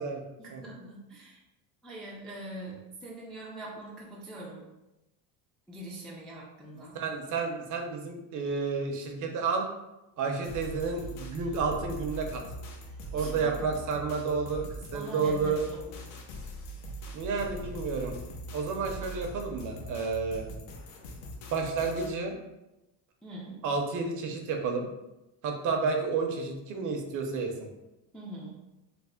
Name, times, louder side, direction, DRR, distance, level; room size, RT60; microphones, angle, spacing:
voice 1, 0.4-1.4 1.8-2.7 3.0-4.6 5.7-7.0 12.9-13.8 14.9-16.0 23.2-23.6 28.1-28.5, right 1 dB, ahead, -5 dB, 0.3 m, -43 dB
voice 2, 6.9-9.7 10.2-12.4 13.1-15.6 17.1-18.2 18.5-20.5 21.5-22.4 23.6-24.9 25.4-27.7, right 4 dB, 45° right, 3 dB, 0.6 m, -31 dB
sound 1, 10.4-22.1, right 1 dB, 80° left, 0.7 m, -42 dB
3.3 x 2.0 x 3.6 m, 0.96 s
cardioid pair, 140°, 41 cm